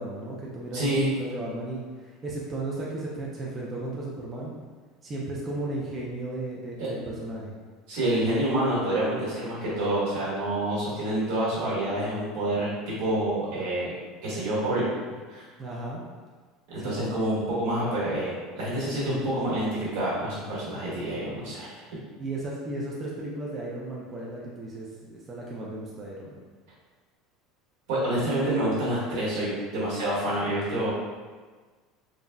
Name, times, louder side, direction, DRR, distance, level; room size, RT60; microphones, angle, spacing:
voice 1, 0.0-4.6 5.0-7.5 15.6-16.0 16.8-17.3 22.2-26.4, right 2 dB, 20° right, -5 dB, 0.3 m, -35 dB
voice 2, 0.7-1.1 6.8-6.9 7.9-13.9 14.2-14.8 15.3-15.4 16.7-21.7 27.9-30.9, right 1 dB, 75° right, -7 dB, 1.3 m, -27 dB
3.7 x 2.0 x 2.2 m, 1.4 s
cardioid pair, 170°, 0 cm